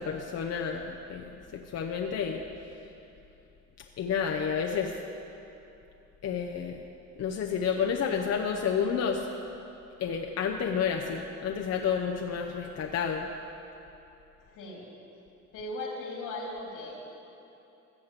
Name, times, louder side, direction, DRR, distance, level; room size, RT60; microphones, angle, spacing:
voice 1, 0.0-2.4 4.0-5.0 6.2-6.8 7.2-9.3 10.0-13.3, left 7 dB, 55° left, 2 dB, 0.8 m, -30 dB
voice 2, 14.4-14.9 15.5-17.1, left 2 dB, 90° left, -2 dB, 2.9 m, -38 dB
15.5 x 6.4 x 7.4 m, 2.9 s
cardioid pair, 90°, 30 cm